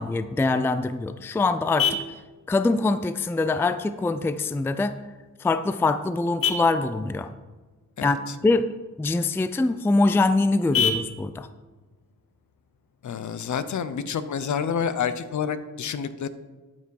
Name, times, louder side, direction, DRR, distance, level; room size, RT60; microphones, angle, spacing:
voice 1, 0.0-2.0 2.5-5.0 5.4-7.3 8.0-8.2 8.4-8.6 9.0-11.5, left 3 dB, 5° left, 12 dB, 0.3 m, -23 dB
Vehicle horn car horn honking, 0.5-13.5, left 6 dB, 85° left, 1.0 m, -34 dB
voice 2, 8.0-8.3 13.0-16.3, left 7 dB, 60° left, 12 dB, 0.7 m, -29 dB
12.0 x 6.0 x 4.7 m, 1.3 s
cardioid pair, 100°, 33 cm